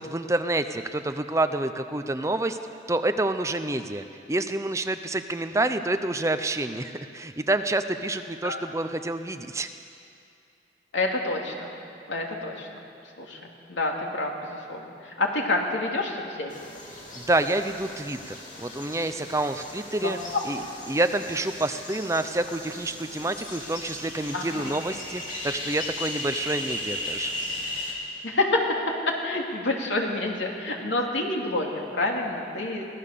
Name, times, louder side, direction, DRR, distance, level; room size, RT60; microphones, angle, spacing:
voice 1, 0.0-2.6 2.9-9.7 17.2-20.2 20.4-20.6 20.9-27.3, right 2 dB, 15° right, 9 dB, 0.6 m, -28 dB
voice 2, 10.9-11.7 12.1-12.7 13.2-16.5 20.0-20.4 24.3-24.7 28.2-32.8, left 2 dB, 85° left, 0 dB, 2.9 m, -28 dB
sound 1, 16.5-27.9, left 1 dB, 40° left, 3.5 m, -37 dB
23.5 x 17.0 x 6.8 m, 2.5 s
head